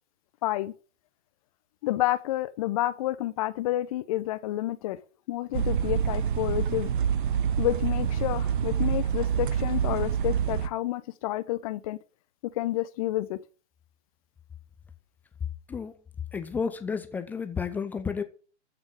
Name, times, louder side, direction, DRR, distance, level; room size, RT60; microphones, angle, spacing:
voice 1, 0.4-0.7 1.8-5.0 5.3-6.9 7.6-12.0 12.4-13.4, left 15 dB, 30° left, 0.8 m, -29 dB
sound 1, 5.5-10.7, right 8 dB, 45° right, 0.9 m, -27 dB
voice 2, 16.3-18.2, left 6 dB, 5° left, 0.5 m, -31 dB
14.5 x 5.9 x 8.4 m
figure-of-eight pair, 120°, 35 cm